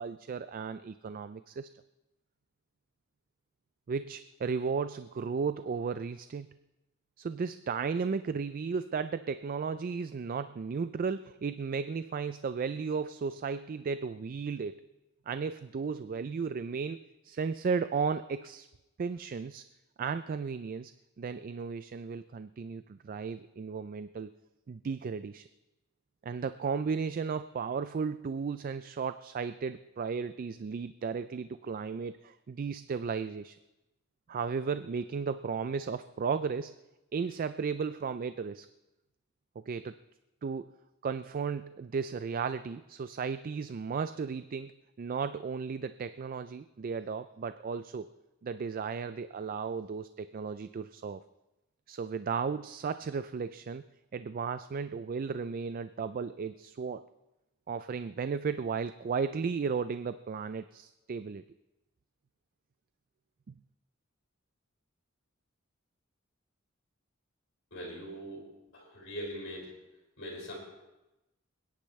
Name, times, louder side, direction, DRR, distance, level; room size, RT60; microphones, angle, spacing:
voice 1, 0.0-1.7 3.9-6.5 7.2-14.8 15.3-18.7 19.0-19.6 20.0-20.9 21.2-24.3 24.7-25.5 26.2-33.6 34.3-36.8 37.1-38.7 39.6-39.9 40.4-40.7 41.0-44.7 45.0-48.1 48.4-51.2 51.9-53.9 54.1-57.1 57.7-61.4 63.5-63.6, right 5 dB, 45° right, 12 dB, 0.3 m, -34 dB
voice 2, 67.7-68.4 68.7-69.7 70.2-70.5, equal, 65° left, -5 dB, 5.0 m, -41 dB
27.0 x 10.5 x 3.2 m, 0.98 s
head